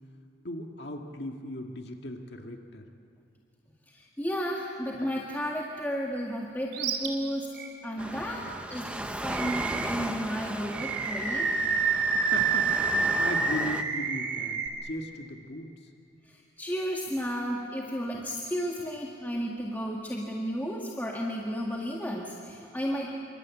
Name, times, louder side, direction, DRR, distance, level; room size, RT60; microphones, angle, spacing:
voice 1, 0.4-2.9 12.3-15.9, left 1 dB, 65° left, 3 dB, 2.0 m, -38 dB
voice 2, 3.9-11.5 16.2-23.2, equal, 10° left, -2 dB, 1.9 m, -33 dB
Animal, 6.7-7.1 7.5-7.7 9.3-10.0 10.7-14.7, right 5 dB, 70° right, 3.0 m, -28 dB
Waves surf, 8.0-13.8, right 1 dB, 5° right, 0.9 m, -36 dB
27.5 x 24.0 x 8.5 m, 2.6 s
head